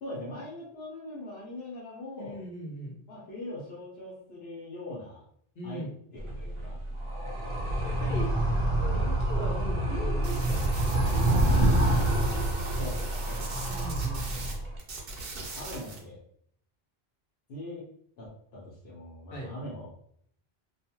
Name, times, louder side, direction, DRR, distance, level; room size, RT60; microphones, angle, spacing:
voice 1, 0.0-2.4 3.1-5.2 5.6-5.8 6.1-6.8 12.8-13.7 15.5-16.2 17.5-17.8 18.2-19.9, left 1 dB, 80° left, -7 dB, 1.0 m, -41 dB
voice 2, 2.2-3.0 5.5-5.9 7.8-8.3 8.8-11.2 13.7-14.5 19.3-19.5, right 1 dB, 55° left, -1 dB, 0.9 m, -39 dB
Animal, 6.2-14.8, right 1 dB, 45° right, 0.4 m, -27 dB
sound 1, 10.2-14.5 14.8-16.0, right 3 dB, 65° right, 0.9 m, -40 dB
2.4 x 2.3 x 2.8 m, 0.65 s
omnidirectional pair, 1.0 m